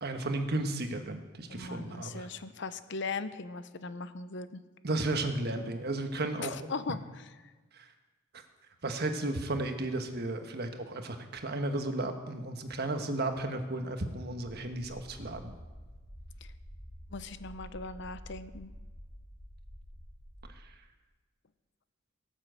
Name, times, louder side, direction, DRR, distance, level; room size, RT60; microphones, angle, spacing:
voice 1, 0.0-2.3 4.8-6.5 7.7-7.9 8.3-8.4 8.8-15.5 20.6-20.7, right 2 dB, 55° right, 6 dB, 1.3 m, -34 dB
voice 2, 1.5-4.6 6.4-7.0 7.4-7.5 16.4-16.5 17.1-18.7, left 4 dB, 60° left, 12 dB, 0.7 m, -39 dB
sound 1, 14.7-20.6, equal, 10° left, 1.9 m, -49 dB
17.5 x 7.4 x 7.6 m, 1.3 s
head